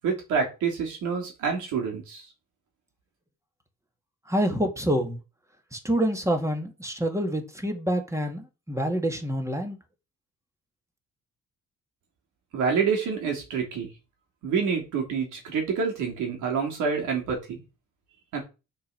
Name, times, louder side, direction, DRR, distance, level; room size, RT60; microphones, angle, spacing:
voice 1, 0.0-2.2 12.5-13.9 14.4-17.4 18.3-18.4, right 6 dB, 90° right, 3.4 m, -27 dB
voice 2, 4.3-5.2 5.7-9.8, equal, 10° right, 2.1 m, -27 dB
6.4 x 5.5 x 6.0 m
cardioid pair, 90°, 30 cm